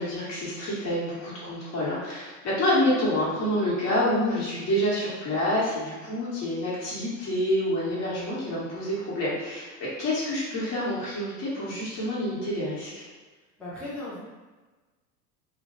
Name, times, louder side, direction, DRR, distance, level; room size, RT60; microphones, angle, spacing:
voice 1, 0.0-13.1, left 1 dB, 35° left, -8 dB, 1.0 m, -27 dB
voice 2, 13.6-14.2, left 2 dB, ahead, -9 dB, 0.4 m, -36 dB
2.2 x 2.1 x 2.9 m, 1.3 s
figure-of-eight pair, 80°, 49 cm